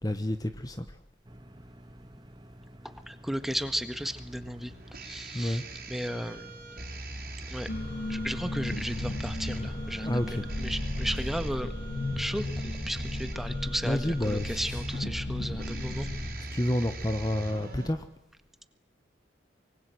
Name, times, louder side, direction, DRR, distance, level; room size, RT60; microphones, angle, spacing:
voice 1, 0.0-0.8 5.3-5.6 10.0-10.5 13.8-14.9 16.5-18.0, left 1 dB, 20° left, 10 dB, 1.2 m, -29 dB
sound 1, 1.2-18.1, equal, 25° right, 1.9 m, -50 dB
voice 2, 3.1-4.7 5.0-5.6 5.9-6.5 7.5-7.7 8.1-11.7 12.2-16.1, equal, ahead, 10 dB, 1.6 m, -35 dB
sound 2, 3.4-17.9, right 1 dB, 50° right, 5.0 m, -42 dB
sound 3, 7.7-16.3, left 1 dB, 65° left, 3.5 m, -35 dB
25.0 x 24.0 x 7.9 m, 0.80 s
head